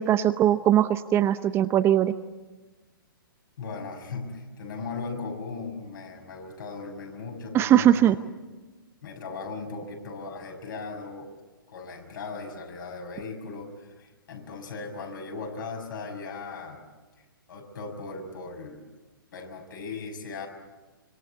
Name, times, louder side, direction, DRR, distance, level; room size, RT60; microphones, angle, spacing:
voice 1, 0.0-2.1 7.5-8.2, right 11 dB, 20° right, 12 dB, 0.8 m, -20 dB
voice 2, 3.6-8.0 9.0-11.3 11.7-16.8 17.5-18.8 19.3-20.5, left 4 dB, 65° left, 2 dB, 6.4 m, -38 dB
25.5 x 23.0 x 8.4 m, 1.2 s
figure-of-eight pair, 125°, 12 cm